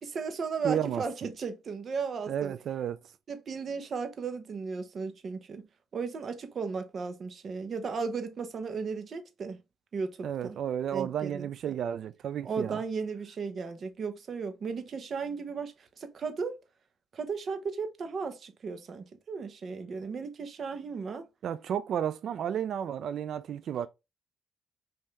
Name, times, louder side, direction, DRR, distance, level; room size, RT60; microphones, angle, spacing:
voice 1, 0.0-2.5 3.3-5.6 5.9-9.6 9.9-10.6 10.9-11.5 12.4-16.5 17.1-21.2, right 5 dB, 50° right, 0.9 m, -35 dB
voice 2, 0.6-1.0 2.3-3.0 10.2-12.8 21.4-23.9, right 9 dB, 65° right, 0.4 m, -32 dB
5.5 x 2.7 x 3.2 m
cardioid pair, 90°, 0 cm